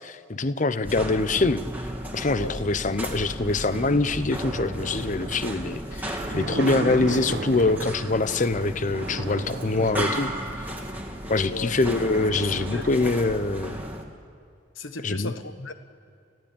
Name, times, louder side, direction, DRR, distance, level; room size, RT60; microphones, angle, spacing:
voice 1, 0.0-1.6 2.1-10.7 11.3-13.7 15.0-15.3, left 3 dB, 40° left, 14 dB, 0.7 m, -24 dB
sound 1, 0.8-14.0, equal, 10° right, 2.1 m, -34 dB
sound 2, 3.0-8.2 8.7-10.8 11.3-11.4 11.6-13.4, right 2 dB, 55° right, 1.0 m, -36 dB
voice 2, 11.4-11.7 12.4-12.9 14.7-15.7, left 3 dB, 80° left, 10 dB, 1.3 m, -36 dB
29.0 x 15.5 x 8.8 m, 2.5 s
head